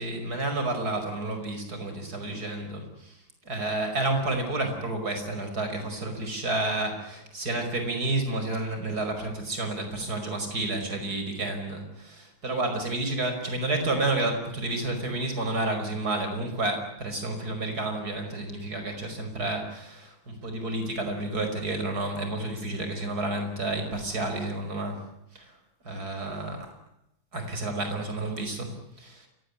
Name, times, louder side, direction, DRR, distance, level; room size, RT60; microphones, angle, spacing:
voice 1, 0.0-25.0 25.3-25.5 25.8-26.6 27.3-29.3, right 2 dB, 50° right, 6 dB, 5.9 m, -30 dB
28.5 x 17.0 x 10.0 m, 0.84 s
omnidirectional pair, 2.1 m